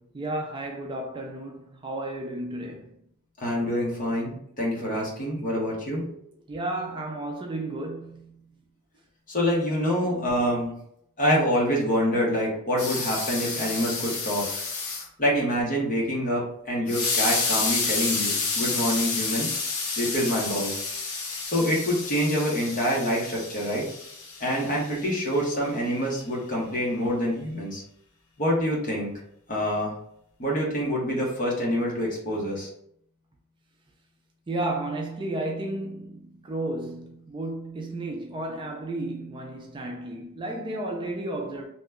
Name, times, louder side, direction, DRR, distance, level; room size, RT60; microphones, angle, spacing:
voice 1, 0.1-3.0 6.5-8.5 34.5-41.6, right 2 dB, 20° right, 0.3 m, -33 dB
voice 2, 3.4-6.1 9.3-10.7 11.2-14.5 15.2-19.5 20.0-20.7 21.4-23.9 24.4-27.8 28.4-29.1 29.5-29.9 30.4-32.7, equal, 40° left, 1.0 m, -26 dB
sound 1, 12.8-15.1 16.9-25.2, left 4 dB, 75° left, 0.8 m, -30 dB
2.9 x 2.2 x 3.5 m
head